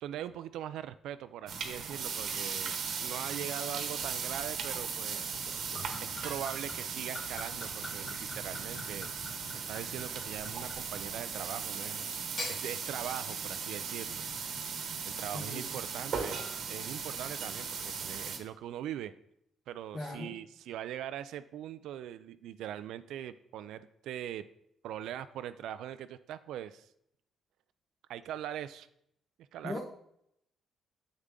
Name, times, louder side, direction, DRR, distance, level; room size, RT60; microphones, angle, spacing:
voice 1, 0.0-5.5 6.0-9.1 9.7-12.0 12.5-14.3 15.0-16.4 16.7-19.1 19.7-24.5 24.8-26.9 28.1-28.9 29.5-29.8, right 11 dB, 85° right, 12 dB, 0.3 m, -41 dB
sound 1, 1.5-18.4, right 6 dB, 70° right, 1.1 m, -37 dB
Gurgling / Chink clink / Liquid, 5.3-11.5 12.2-12.6, left 1 dB, 80° left, 3.2 m, -45 dB
voice 2, 15.3-15.7 19.9-20.3 29.6-29.8, left 2 dB, 35° left, 0 dB, 1.1 m, -39 dB
7.3 x 6.5 x 3.7 m, 0.75 s
cardioid pair, 85°, 0 cm